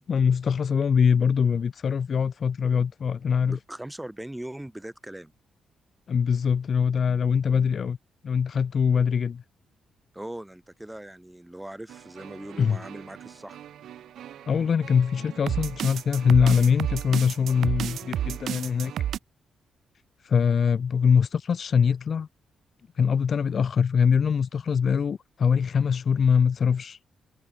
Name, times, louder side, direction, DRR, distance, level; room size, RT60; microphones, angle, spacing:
voice 1, 0.1-3.6 6.1-8.0 8.2-9.4 12.6-12.8 14.5-18.9 20.2-22.3 23.0-27.0, left 6 dB, 40° left, 1.6 m, -23 dB
voice 2, 3.4-5.3 10.1-13.6, right 1 dB, 5° right, 4.6 m, -40 dB
sound 1, 11.9-19.2, right 11 dB, 70° right, 0.7 m, -33 dB
cardioid pair, 165°, 0 cm